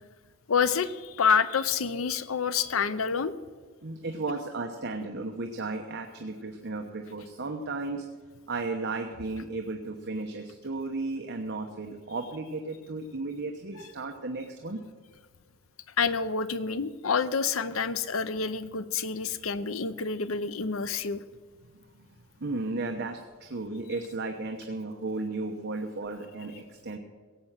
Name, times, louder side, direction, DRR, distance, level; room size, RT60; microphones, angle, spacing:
voice 1, 0.5-3.3 16.0-21.2, left 6 dB, 80° left, 14 dB, 0.7 m, -28 dB
voice 2, 3.8-8.0 8.5-14.8 19.4-19.5 22.0-22.1 22.4-27.0, right 3 dB, 55° right, 4 dB, 1.0 m, -34 dB
17.0 x 7.9 x 7.4 m, 1.5 s
head